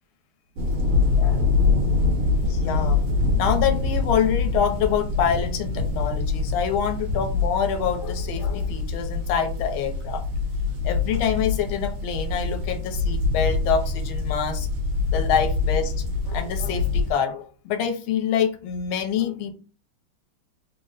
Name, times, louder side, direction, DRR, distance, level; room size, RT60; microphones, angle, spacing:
sound 1, 0.6-17.1, left 4 dB, 75° right, 1.7 m, -24 dB
voice 1, 1.2-1.5 2.4-3.0 3.3-10.2 10.8-14.7 15.1-15.9 16.3-19.5, left 7 dB, 75° left, 6 dB, 1.4 m, -26 dB
3.8 x 2.0 x 3.8 m, 0.36 s
omnidirectional pair, 2.4 m